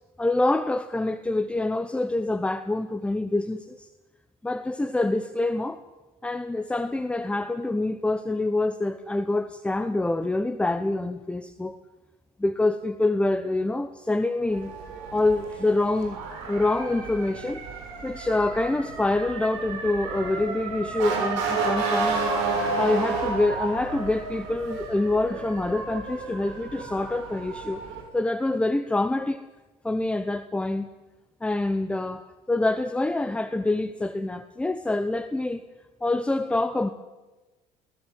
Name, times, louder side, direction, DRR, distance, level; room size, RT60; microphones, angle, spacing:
voice 1, 0.2-3.9 4.4-5.8 6.2-11.8 12.4-14.7 15.1-16.2 16.5-17.6 18.0-22.2 22.8-27.8 28.1-29.4 29.8-30.9 31.4-35.6 36.0-36.9, left 2 dB, 10° left, 10 dB, 1.0 m, -26 dB
Motor vehicle (road) / Siren, 14.5-28.0, right 4 dB, 85° right, 6.2 m, -31 dB
23.0 x 17.0 x 9.3 m, 1.2 s
supercardioid pair, 105°, 13 cm